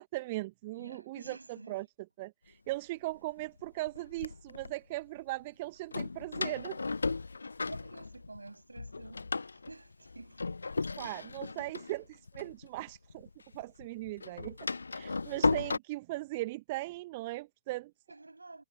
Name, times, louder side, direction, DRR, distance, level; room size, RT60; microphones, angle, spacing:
voice 1, 0.0-1.9 2.2-6.8 11.0-13.3 13.5-14.6 14.9-17.9, right 20 dB, 40° right, 1.6 m, -39 dB
voice 2, 0.7-1.8 7.4-9.3 9.5-10.4 10.7-11.2 18.1-18.6, right 2 dB, 80° right, 7.6 m, -50 dB
Door, 2.7-2.8 3.6-4.7 5.9-8.5 8.8-13.3 13.5-15.8, left 4 dB, 75° left, 0.4 m, -35 dB
figure-of-eight pair, 110°, 0 cm